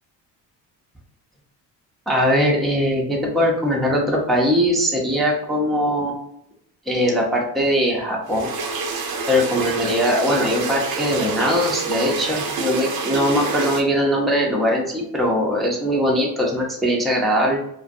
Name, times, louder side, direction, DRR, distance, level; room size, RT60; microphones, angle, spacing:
voice 1, 2.1-6.1 6.9-8.5 9.3-17.6, equal, ahead, -2 dB, 0.5 m, -21 dB
sound 1, 8.3-13.8, right 4 dB, 60° right, 0.6 m, -27 dB
2.4 x 2.1 x 2.5 m, 0.77 s
cardioid pair, 90°, 41 cm